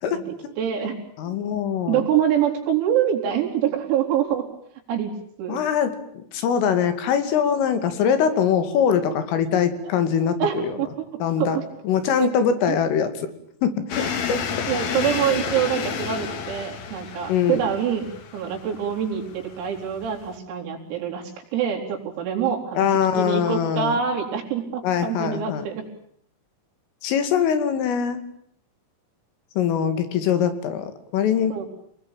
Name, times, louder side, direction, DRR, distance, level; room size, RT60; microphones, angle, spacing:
voice 1, 0.6-1.0 1.3-1.4 1.9-4.5 4.9-5.6 10.4-10.9 11.4-11.7 12.2-12.3 12.7-12.8 14.0-14.1 14.7-22.9 23.1-25.9 31.5-31.7, right 9 dB, 85° right, 2 dB, 6.8 m, -25 dB
voice 2, 1.2-2.0 5.5-10.8 11.2-11.6 11.9-13.3 13.6-13.7 14.3-14.4 17.3-17.6 22.8-24.0 24.8-25.7 27.0-28.2 29.6-31.6, left 8 dB, 75° left, 10 dB, 5.0 m, -22 dB
sound 1, 13.9-20.4, left 7 dB, 55° left, 2.0 m, -31 dB
29.0 x 20.5 x 9.0 m, 0.67 s
omnidirectional pair, 6.0 m